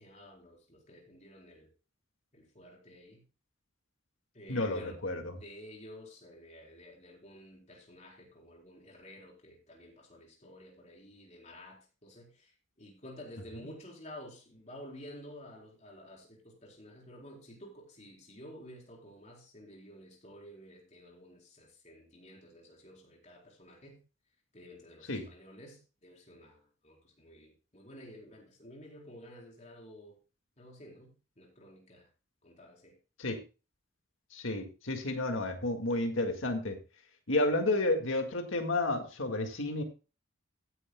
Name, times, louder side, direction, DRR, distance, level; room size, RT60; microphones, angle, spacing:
voice 1, 0.0-1.7 2.3-3.2 4.3-5.0 5.3-24.0 24.5-30.2 30.6-32.1 32.4-33.0, equal, 35° left, 4.1 m, -52 dB
voice 2, 4.5-5.4 25.1-25.3 33.2-33.4 34.3-36.8 37.3-39.8, left 2 dB, 85° left, 1.9 m, -31 dB
16.0 x 9.9 x 2.2 m
head